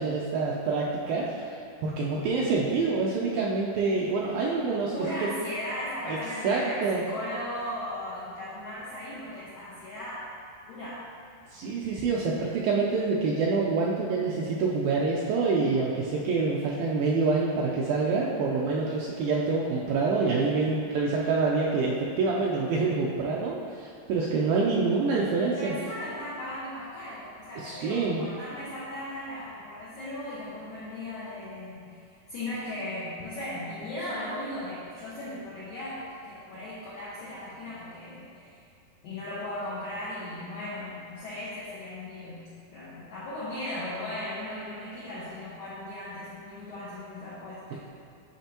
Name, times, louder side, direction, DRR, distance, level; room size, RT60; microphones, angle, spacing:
voice 1, 0.0-4.9 6.1-6.2 6.4-7.0 11.5-25.7 27.6-28.2, right 4 dB, 85° right, -4 dB, 2.0 m, -26 dB
voice 2, 4.9-10.3 10.7-11.1 21.8-22.0 25.6-38.6 39.0-47.8, left 1 dB, 75° left, -9 dB, 1.7 m, -37 dB
8.9 x 5.2 x 2.9 m, 2.4 s
omnidirectional pair, 4.7 m